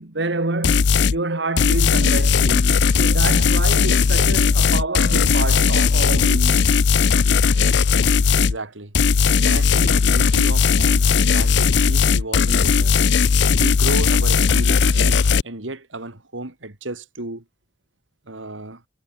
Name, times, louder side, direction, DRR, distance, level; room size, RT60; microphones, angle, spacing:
voice 1, 0.0-6.7, right 2 dB, 70° right, 1.6 m, -27 dB
sound 1, 0.6-1.2 1.6-8.6 8.9-15.4, left 5 dB, 65° left, 0.5 m, -17 dB
voice 2, 8.3-8.9 9.4-13.0 13.5-17.4 18.3-18.8, right 2 dB, 85° right, 3.1 m, -33 dB
head